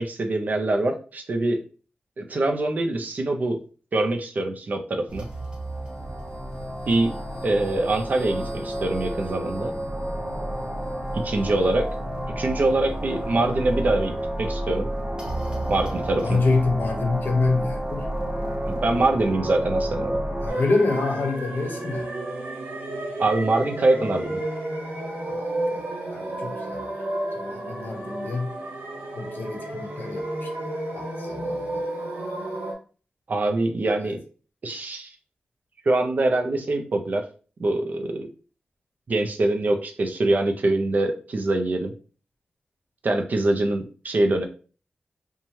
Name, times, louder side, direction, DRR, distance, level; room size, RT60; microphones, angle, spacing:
voice 1, 0.0-1.6 2.2-3.6 3.9-5.3 6.9-7.1 7.4-9.7 11.1-11.9 12.4-14.9 15.7-16.4 18.7-20.2 23.2-24.4 33.3-34.2 34.6-35.1 35.9-37.2 37.6-38.3 39.1-41.9 43.0-44.5, right 2 dB, 50° right, 0.5 m, -24 dB
sound 1, 5.1-20.5, right 1 dB, 25° right, 0.8 m, -30 dB
voice 2, 16.2-18.1 20.4-22.1 25.3-26.8 27.3-28.6 29.2-30.5 30.9-31.8 34.0-34.2, left 3 dB, 65° left, 0.7 m, -27 dB
sound 2, 20.5-32.7, right 1 dB, 80° right, 0.8 m, -32 dB
2.7 x 2.2 x 3.1 m
wide cardioid pair, 105°, 4 cm